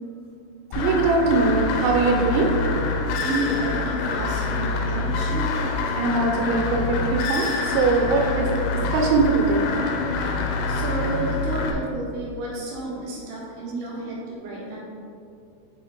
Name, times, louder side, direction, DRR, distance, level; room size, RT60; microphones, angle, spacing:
sound 1, 0.7-11.7, left 3 dB, 85° left, 3.0 m, -26 dB
voice 1, 0.7-2.5 6.0-7.5 7.7-9.7, right 3 dB, 85° right, 1 dB, 3.2 m, -21 dB
voice 2, 3.2-5.5 10.7-14.8, right 1 dB, 70° right, -5 dB, 2.6 m, -31 dB
7.9 x 3.1 x 4.7 m, 2.5 s
omnidirectional pair, 5.8 m